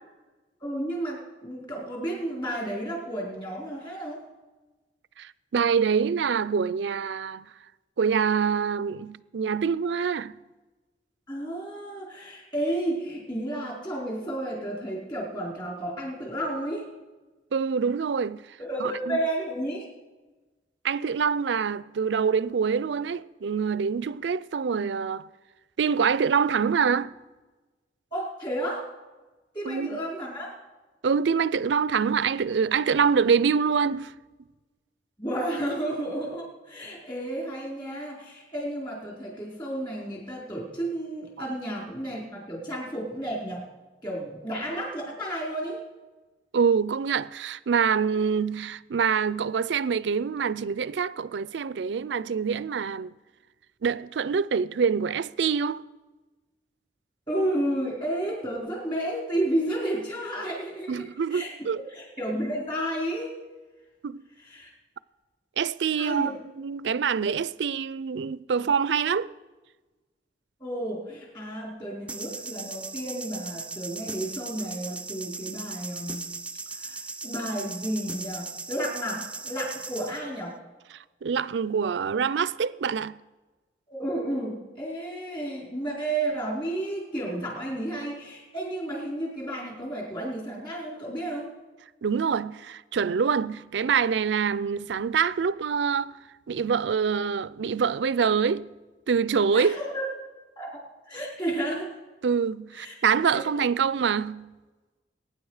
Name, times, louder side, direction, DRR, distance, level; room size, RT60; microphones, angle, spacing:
voice 1, 0.6-4.2 11.3-16.9 18.6-19.9 28.1-28.9 29.5-30.5 35.2-43.7 44.0-45.8 57.3-61.5 61.9-63.3 64.4-64.7 66.0-66.3 70.6-76.3 76.7-80.5 83.9-91.5 99.5-100.0 100.6-101.9 102.8-102.9, right 1 dB, 25° left, 4.5 m, -32 dB
voice 2, 5.2-7.5 8.0-10.3 17.5-18.4 18.8-19.2 20.8-25.3 25.8-27.1 29.6-30.0 31.0-34.1 41.4-41.5 46.5-53.1 53.8-55.8 60.9-61.8 64.0-64.2 65.6-69.3 80.9-83.2 92.0-96.2 96.5-98.7 99.1-99.8 102.2-104.5, right 6 dB, 85° right, 0.4 m, -25 dB
sound 1, 72.1-80.2, right 3 dB, 5° right, 0.4 m, -38 dB
22.5 x 9.7 x 4.9 m
head